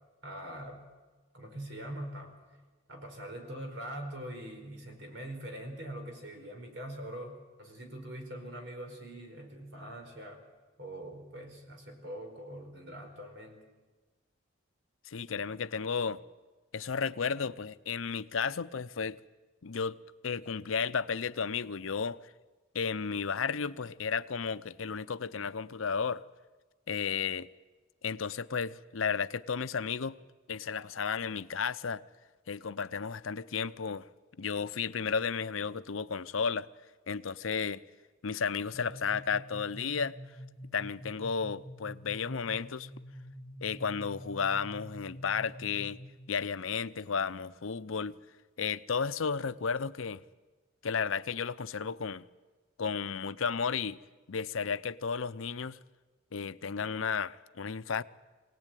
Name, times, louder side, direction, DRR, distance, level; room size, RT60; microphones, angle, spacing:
voice 1, 0.2-0.8 1.3-2.3 2.9-10.4 10.8-13.6, right 1 dB, 60° right, 4.7 m, -43 dB
voice 2, 15.1-16.2 16.7-19.2 19.6-20.0 20.2-22.2 22.7-26.2 26.9-27.5 28.0-30.2 30.5-32.0 32.5-34.1 34.4-36.7 37.1-37.8 38.2-40.1 40.7-42.9 43.6-46.0 46.3-48.2 48.6-50.2 50.8-52.3 52.8-54.0 54.3-55.8 56.3-58.0, left 6 dB, 85° left, 0.7 m, -33 dB
sound 1, 38.7-46.3, equal, 40° right, 4.0 m, -47 dB
24.5 x 18.0 x 9.2 m
head